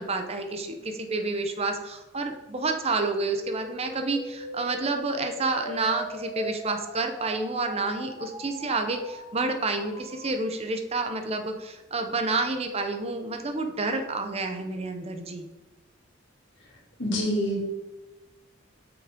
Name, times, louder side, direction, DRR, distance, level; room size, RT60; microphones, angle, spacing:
voice 1, 0.0-15.5, right 3 dB, 30° right, 6 dB, 0.7 m, -29 dB
sound 1, 3.3-10.3, equal, ahead, 1.6 m, -41 dB
voice 2, 17.0-17.7, equal, 65° left, -3 dB, 2.6 m, -26 dB
8.5 x 6.0 x 3.6 m, 1.1 s
head